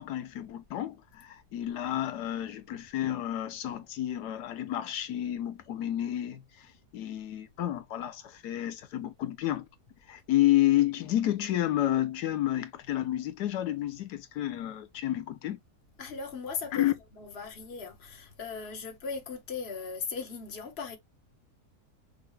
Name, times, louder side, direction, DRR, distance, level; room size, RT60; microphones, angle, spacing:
voice 1, 0.0-9.7 10.1-15.6 16.7-16.9, left 13 dB, 90° left, 1.3 m, -30 dB
voice 2, 16.0-21.0, left 5 dB, 45° left, 1.3 m, -38 dB
5.6 x 2.3 x 3.1 m
omnidirectional pair, 1.7 m